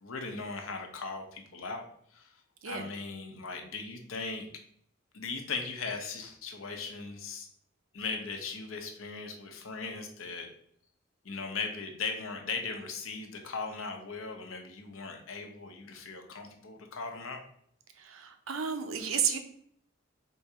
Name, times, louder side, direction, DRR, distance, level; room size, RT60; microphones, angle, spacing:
voice 1, 0.0-4.5 5.1-7.5 7.9-10.5 11.2-17.4, left 4 dB, 90° left, 3 dB, 0.8 m, -38 dB
voice 2, 18.0-19.4, right 7 dB, 85° right, 7 dB, 0.6 m, -32 dB
3.8 x 2.8 x 4.7 m, 0.66 s
head